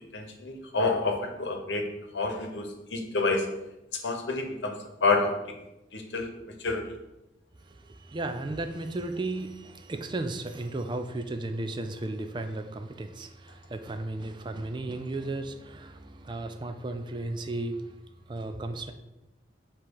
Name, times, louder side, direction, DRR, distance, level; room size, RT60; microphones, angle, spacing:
voice 1, 0.1-1.9 2.1-3.5 4.0-5.3 5.9-6.3 6.6-6.8, left 3 dB, 85° left, 4 dB, 1.0 m, -28 dB
voice 2, 7.7-18.0 18.3-18.9, right 2 dB, 25° right, 8 dB, 0.4 m, -35 dB
7.2 x 3.0 x 4.7 m, 0.96 s
head